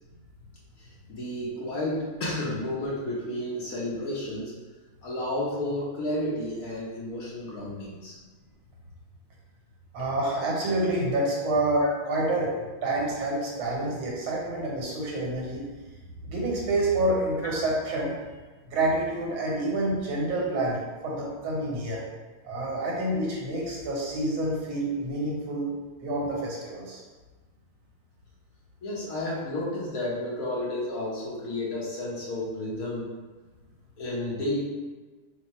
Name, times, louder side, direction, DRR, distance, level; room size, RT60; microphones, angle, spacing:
voice 1, 1.1-4.5 5.0-8.1 11.8-11.9 28.8-33.1 34.0-34.6, left 1 dB, 55° left, -5 dB, 1.0 m, -31 dB
voice 2, 9.9-12.5 12.8-15.7 16.2-18.1 18.7-22.0 22.4-25.7 26.0-27.0, right 1 dB, 80° right, -3 dB, 1.9 m, -28 dB
4.5 x 2.2 x 4.1 m, 1.3 s
omnidirectional pair, 2.2 m